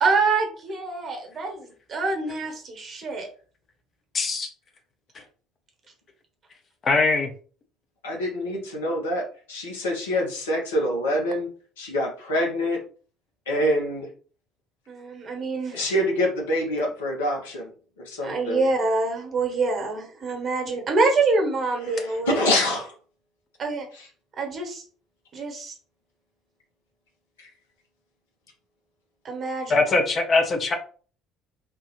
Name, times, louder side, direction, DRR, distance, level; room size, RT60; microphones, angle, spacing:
voice 1, 0.0-3.3 14.9-15.7 18.2-22.5 23.6-23.9 24.4-24.8 25.3-25.7 29.2-29.9, right 3 dB, 40° right, 2 dB, 1.1 m, -26 dB
voice 2, 4.1-4.5 5.1-5.2 6.8-7.3 29.7-30.7, left 3 dB, 35° left, 5 dB, 0.7 m, -21 dB
voice 3, 8.0-11.5 11.8-12.8 13.5-14.1 15.7-17.7 18.0-18.7 21.8-22.9 23.9-24.1 27.4-27.5, left 1 dB, 70° left, -1 dB, 0.9 m, -26 dB
3.5 x 2.4 x 2.9 m, 0.41 s
figure-of-eight pair, 55°, 0 cm